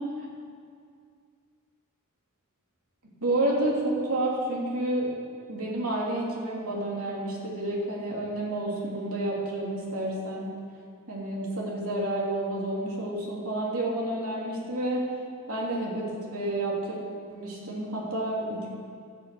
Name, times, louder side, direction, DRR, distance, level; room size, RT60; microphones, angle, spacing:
voice 1, 3.0-5.1 5.5-10.6 11.1-15.1 15.5-17.0 17.3-18.7, right 1 dB, 85° right, -3 dB, 2.9 m, -30 dB
13.5 x 6.5 x 7.8 m, 2.2 s
head